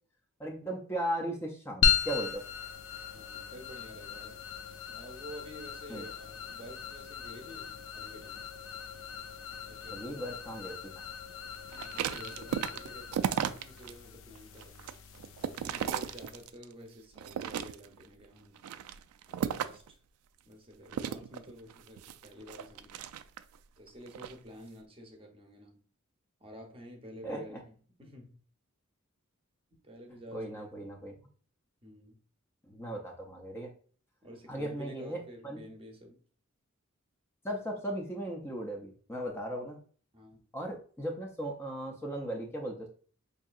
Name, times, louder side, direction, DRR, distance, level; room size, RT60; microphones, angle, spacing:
voice 1, 0.4-2.4 5.9-6.1 9.9-10.8 27.2-27.4 30.3-31.1 32.6-33.7 34.5-35.7 37.4-39.8 40.5-42.9, right 1 dB, 10° left, 0 dB, 0.5 m, -37 dB
sound 1, 1.8-16.5, left 7 dB, 65° left, 0.4 m, -37 dB
voice 2, 3.1-4.4 4.9-8.5 9.7-10.3 11.9-14.8 15.6-18.6 19.3-20.0 20.4-23.0 23.8-25.8 26.4-28.4 29.8-30.7 31.8-32.2 34.2-36.2 40.1-40.4, equal, 25° right, 3 dB, 0.7 m, -50 dB
sound 2, 11.7-13.9 14.4-16.7 17.2-18.1 18.6-19.9 20.9-23.6 24.1-24.4, right 8 dB, 90° right, 0.3 m, -35 dB
4.8 x 2.7 x 2.4 m, 0.44 s
head